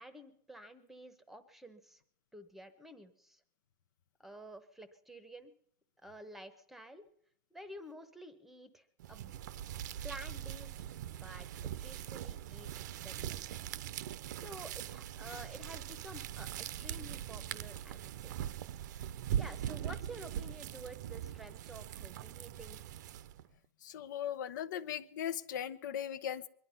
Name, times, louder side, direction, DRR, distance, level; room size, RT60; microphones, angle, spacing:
voice 1, 0.0-2.0 2.3-3.4 4.2-5.5 6.0-7.1 7.5-9.3 10.0-12.7 13.0-13.4 14.3-18.3 19.4-22.9, right 1 dB, ahead, 12 dB, 0.9 m, -51 dB
sound 1, 9.0-23.5, right 11 dB, 70° right, 0.7 m, -41 dB
voice 2, 23.8-26.5, left 9 dB, 80° left, 13 dB, 0.9 m, -38 dB
23.0 x 11.0 x 5.7 m, 0.68 s
supercardioid pair, 170°, 10 cm